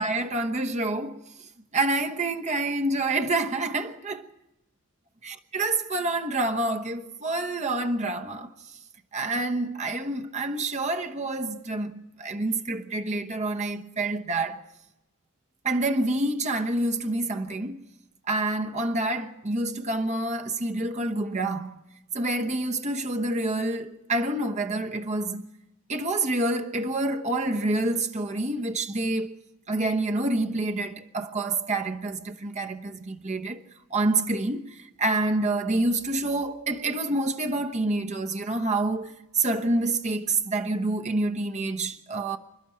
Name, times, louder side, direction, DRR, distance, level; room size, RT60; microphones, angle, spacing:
voice 1, 0.0-4.3 5.2-8.8 9.1-14.6 15.6-17.8 18.3-21.8 22.1-25.5 25.9-33.6 33.9-42.4, right 2 dB, 30° right, 1.0 m, -27 dB
27.5 x 12.0 x 8.6 m
head